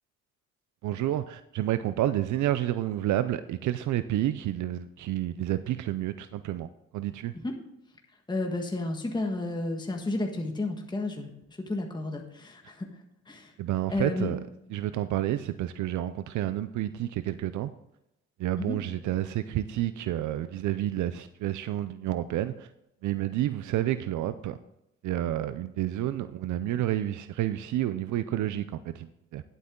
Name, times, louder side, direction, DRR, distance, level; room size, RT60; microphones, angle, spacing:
voice 1, 0.8-6.7 6.9-7.3 13.6-14.4 14.7-17.7 18.4-22.7 23.0-24.6 25.0-29.4, right 13 dB, 75° right, 12 dB, 0.6 m, -30 dB
voice 2, 8.3-13.5 13.9-14.3 18.6-18.8, left 2 dB, 15° left, 2 dB, 1.6 m, -32 dB
11.0 x 8.2 x 3.8 m, 0.86 s
cardioid pair, 90°, 30 cm